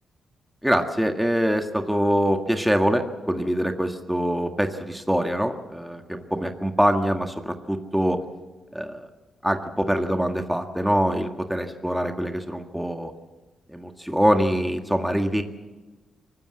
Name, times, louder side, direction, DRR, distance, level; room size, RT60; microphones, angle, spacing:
voice 1, 0.6-8.2 8.7-9.1 9.4-13.1 13.7-15.4, equal, 5° right, 5 dB, 1.8 m, -24 dB
24.0 x 14.5 x 7.6 m, 1.2 s
supercardioid pair, 55°, 0 cm